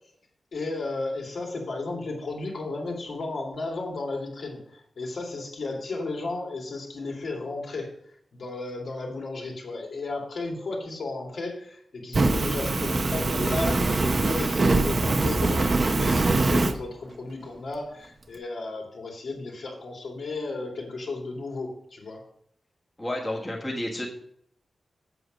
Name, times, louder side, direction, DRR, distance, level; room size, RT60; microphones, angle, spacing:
voice 1, 0.5-22.2, left 3 dB, 60° left, -1 dB, 2.5 m, -34 dB
Fire, 12.1-16.7, right 3 dB, 35° right, 0.8 m, -23 dB
voice 2, 23.0-24.1, left 1 dB, 15° left, -3 dB, 1.5 m, -30 dB
7.9 x 7.8 x 5.2 m, 0.67 s
wide cardioid pair, 155°, 0 cm